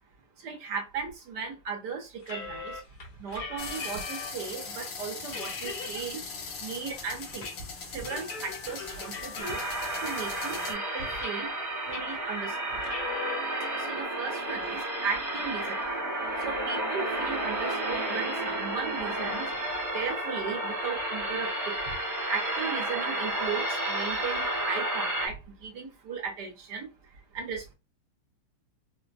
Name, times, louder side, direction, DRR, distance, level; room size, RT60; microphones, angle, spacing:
voice 1, 0.4-2.7 3.2-6.2 6.6-7.5 7.9-9.6 10.0-11.5 11.9-12.5 13.9-15.8 16.4-19.5 19.9-21.8 22.3-25.4 25.6-26.9 27.3-27.7, right 5 dB, 65° right, 1.1 m, -36 dB
sound 1, 2.2-4.5 4.9-5.0 5.3-6.1 6.4-7.6 7.8-9.9 10.4-11.6 11.9-12.2 12.7-13.4, left 5 dB, 60° left, 1.1 m, -40 dB
sound 2, 3.6-10.7, left 4 dB, 80° left, 1.9 m, -40 dB
sound 3, 9.4-25.3, right 1 dB, 15° right, 0.8 m, -31 dB
4.5 x 2.0 x 2.5 m
omnidirectional pair, 2.4 m